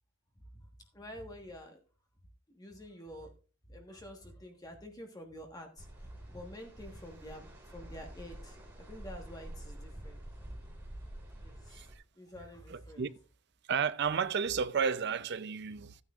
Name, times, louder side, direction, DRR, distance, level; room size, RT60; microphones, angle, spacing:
voice 1, 0.9-1.8 2.5-3.3 3.7-7.4 7.7-10.2 11.4-11.8 12.2-13.0, equal, 20° left, 1.3 m, -48 dB
sound 1, 5.8-12.0, right 1 dB, 10° right, 3.4 m, -48 dB
voice 2, 12.7-13.1 13.7-16.0, right 6 dB, 50° right, 0.5 m, -32 dB
13.5 x 9.4 x 2.4 m
head